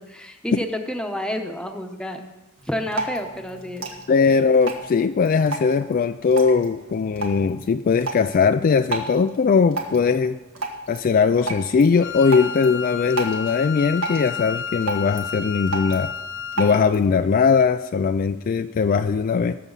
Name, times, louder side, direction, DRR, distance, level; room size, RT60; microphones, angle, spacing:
voice 1, 0.0-2.2 2.7-3.9, left 1 dB, 5° left, 4 dB, 1.0 m, -29 dB
Drip, 2.6-17.1, right 3 dB, 70° right, 1.9 m, -34 dB
voice 2, 4.1-10.4 10.9-16.1 16.6-19.6, left 5 dB, 40° left, 9 dB, 0.3 m, -20 dB
Wind instrument woodwind instrument, 12.0-16.8, left 7 dB, 60° left, 0.7 m, -31 dB
20.0 x 6.9 x 4.0 m, 1.1 s
head